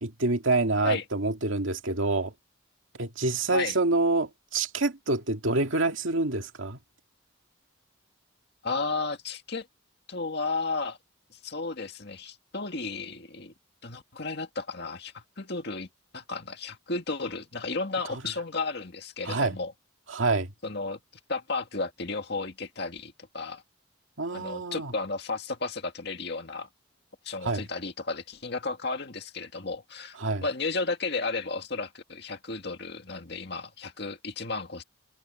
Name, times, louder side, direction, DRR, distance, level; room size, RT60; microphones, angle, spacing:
voice 1, 0.0-2.3 3.0-6.8 18.1-18.2 19.3-19.6 20.1-20.5 24.2-24.9 27.4-27.6 30.2-30.4, right 2 dB, 70° right, 2.3 m, -27 dB
voice 2, 8.6-9.7 10.1-11.0 11.3-13.5 13.8-15.9 16.1-19.7 20.6-21.0 21.3-23.6 24.3-26.7 27.2-34.8, left 3 dB, 55° left, 2.1 m, -33 dB
head